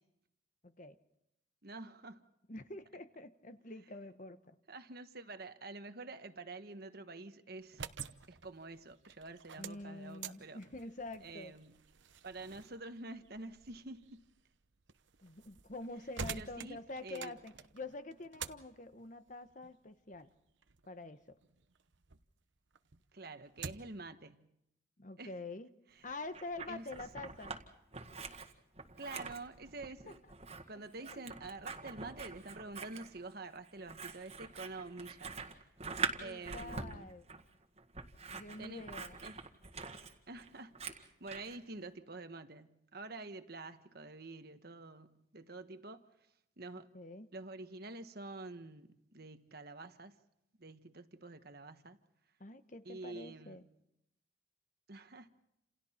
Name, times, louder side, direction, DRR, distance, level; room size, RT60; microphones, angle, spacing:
voice 1, 0.6-1.0 2.5-4.6 9.6-11.5 15.2-20.3 20.9-21.4 25.0-25.7 26.0-27.6 30.1-30.2 31.0-31.3 36.2-37.2 38.3-39.2 46.9-47.3 52.4-53.6, left 2 dB, 40° left, 1.1 m, -46 dB
voice 2, 1.6-2.2 4.7-7.8 8.3-10.6 11.2-11.8 12.2-14.2 16.3-17.3 23.1-24.5 25.2-25.4 25.9-26.1 26.7-26.9 29.0-30.2 30.7-35.7 36.2-37.1 38.6-38.9 39.2-39.4 40.3-40.7 41.0-46.1 46.6-46.9 47.3-50.2 50.6-52.0 52.8-53.6 54.9-55.3, right 3 dB, 50° right, 1.3 m, -48 dB
sound 1, 7.6-22.3 22.7-24.1, right 6 dB, 70° right, 1.0 m, -49 dB
Scissors, 26.1-27.6 27.9-41.6, right 5 dB, 35° right, 1.9 m, -44 dB
29.5 x 28.0 x 4.4 m
head